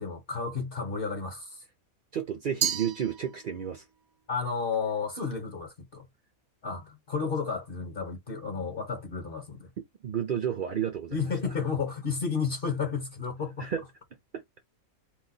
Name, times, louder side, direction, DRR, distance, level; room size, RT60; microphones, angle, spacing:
voice 1, 0.0-1.6 4.3-6.1 6.6-9.7 11.1-13.7, left 5 dB, 50° left, 0.8 m, -32 dB
voice 2, 2.1-3.8 10.0-11.2 13.6-13.8, right 9 dB, 60° right, 0.5 m, -31 dB
Glass, 2.6-3.8, right 10 dB, 75° right, 1.0 m, -32 dB
2.9 x 2.1 x 3.9 m
omnidirectional pair, 1.5 m